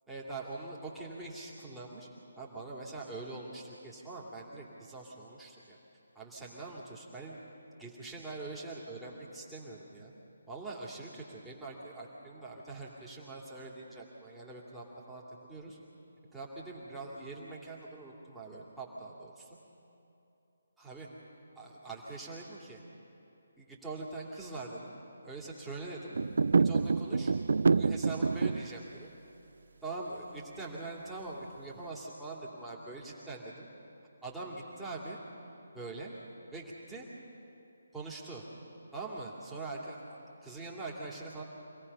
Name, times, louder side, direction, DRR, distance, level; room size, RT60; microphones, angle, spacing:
voice 1, 0.1-2.1 2.4-5.8 6.1-7.4 7.8-10.1 10.5-15.8 16.3-19.6 20.8-21.1 21.6-22.8 23.6-24.9 25.2-26.1 26.6-27.3 27.7-29.1 29.8-33.7 34.2-35.2 35.7-36.1 36.5-37.1 37.9-38.4 38.9-40.2 40.4-41.4, right 2 dB, 5° right, -6 dB, 2.8 m, -43 dB
sound 1, 26.1-28.7, right 4 dB, 65° right, 0.4 m, -27 dB
26.0 x 17.5 x 5.6 m, 2.9 s
figure-of-eight pair, 145°, 0 cm